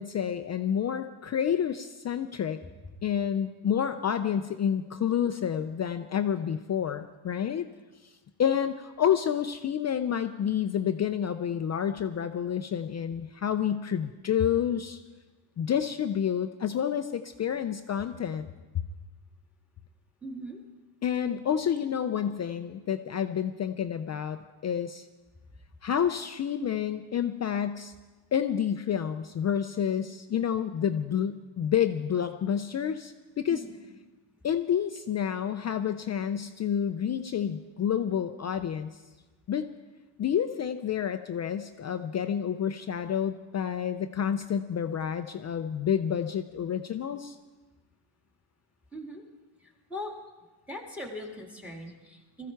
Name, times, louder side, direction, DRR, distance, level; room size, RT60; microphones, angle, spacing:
voice 1, 0.0-2.6 3.0-7.7 8.4-15.0 15.6-18.5 18.7-18.9 21.0-25.1 25.8-27.9 28.3-33.6 34.4-39.0 39.5-39.7 40.2-47.4, left 8 dB, 35° left, 8 dB, 0.4 m, -29 dB
voice 2, 20.2-20.6 33.5-33.7 48.9-49.2 49.6-50.1 50.7-52.5, equal, 5° right, 1 dB, 2.0 m, -40 dB
20.5 x 14.5 x 4.5 m, 1.2 s
cardioid pair, 160°, 50 cm